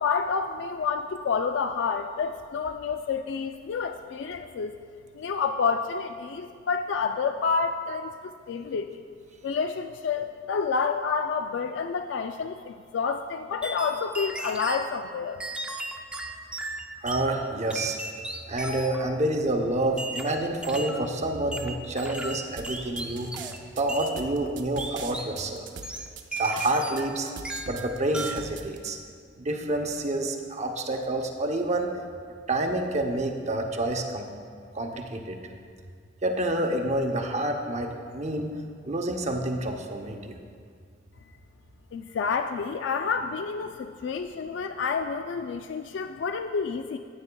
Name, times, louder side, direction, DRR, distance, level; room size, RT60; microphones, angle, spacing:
voice 1, 0.0-4.8 5.1-8.1 8.5-9.0 9.4-15.4 41.9-47.0, left 5 dB, 70° left, 8 dB, 0.3 m, -29 dB
sound 1, 13.6-14.9 15.4-17.3 17.7-19.1 20.0-21.0 21.5-23.6 23.9-24.2 24.8-25.4 25.8-27.1 27.4-27.8 28.1-28.5, right 1 dB, 5° right, 0.6 m, -36 dB
voice 2, 17.0-18.0 18.5-23.3 23.8-25.6 26.4-27.3 27.7-29.0 29.4-31.9 32.5-34.2 34.7-35.4 36.2-38.5 38.8-40.4, right 1 dB, 40° right, 3 dB, 0.8 m, -28 dB
sound 2, 22.6-28.9, right 6 dB, 70° right, 0.7 m, -41 dB
15.0 x 9.0 x 2.3 m, 2.1 s
head